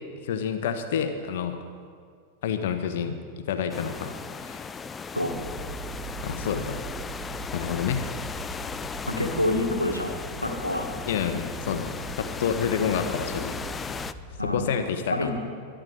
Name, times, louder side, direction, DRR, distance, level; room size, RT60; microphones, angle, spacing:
voice 1, 0.2-1.6 2.4-3.2 3.5-4.6 6.2-6.8 7.5-8.0 11.1-13.6 13.8-14.0 14.4-15.3, left 7 dB, 55° left, 8 dB, 1.3 m, -29 dB
sound 1, 3.7-14.1, left 5 dB, 15° left, 0.5 m, -36 dB
sound 2, 5.2-14.6, right 3 dB, 55° right, 3.6 m, -41 dB
voice 2, 9.1-10.1 10.4-10.9 14.4-14.6 15.1-15.3, left 1 dB, 85° left, 3 dB, 1.7 m, -26 dB
23.0 x 11.5 x 4.0 m, 2.1 s
figure-of-eight pair, 90°, 0 cm